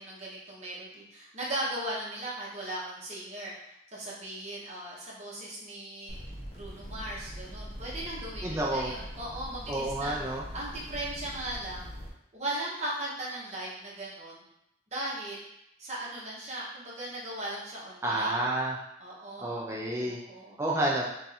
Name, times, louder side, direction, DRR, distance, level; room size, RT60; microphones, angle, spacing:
voice 1, 0.0-3.5 3.9-6.2 6.5-11.9 12.3-14.4 14.9-15.4 15.8-18.4 19.0-20.6, right 1 dB, 35° right, -5 dB, 0.8 m, -38 dB
sound 1, 6.1-12.1, equal, 35° left, 0.5 m, -42 dB
voice 2, 8.4-8.9 9.7-10.4 18.0-18.8 19.4-20.2 20.6-21.0, right 1 dB, 15° right, -3 dB, 0.3 m, -29 dB
2.5 x 2.3 x 4.0 m, 0.81 s
head